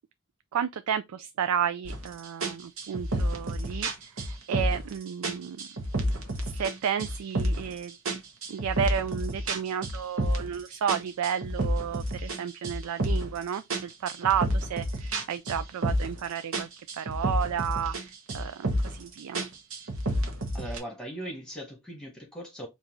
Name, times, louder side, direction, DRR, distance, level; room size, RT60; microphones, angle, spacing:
voice 1, 0.5-5.7 6.4-8.0 8.5-19.4, right 8 dB, 90° right, 0.4 m, -32 dB
sound 1, 1.8-2.1 2.4-4.9 5.2-6.7 7.0-7.7 8.0-10.6 10.9-13.4 13.7-16.2 16.5-18.0 18.3-19.0 19.3-20.8, right 1 dB, 70° right, 1.1 m, -30 dB
voice 2, 20.5-22.7, right 1 dB, 5° left, 1.4 m, -39 dB
4.6 x 2.7 x 3.6 m
head